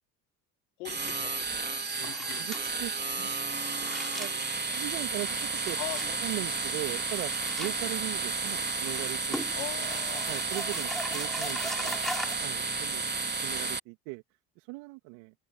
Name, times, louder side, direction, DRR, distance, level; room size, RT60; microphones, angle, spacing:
voice 1, 0.8-1.7 2.0-2.5 5.8-6.5 9.6-10.3 12.2-13.1, left 20 dB, 85° left, 3.5 m, -42 dB
sound 1, 0.8-13.8, right 4 dB, 20° right, 3.5 m, -32 dB
voice 2, 2.0-3.4 3.8-5.8 6.2-7.3 7.6-9.5 9.8-9.9 10.3-12.0 12.4-13.0 13.4-14.2 14.6-15.3, right 26 dB, 75° right, 2.7 m, -39 dB
sound 2, 2.1-12.3, equal, ahead, 3.0 m, -41 dB
open air
hypercardioid pair, 60°, 45 cm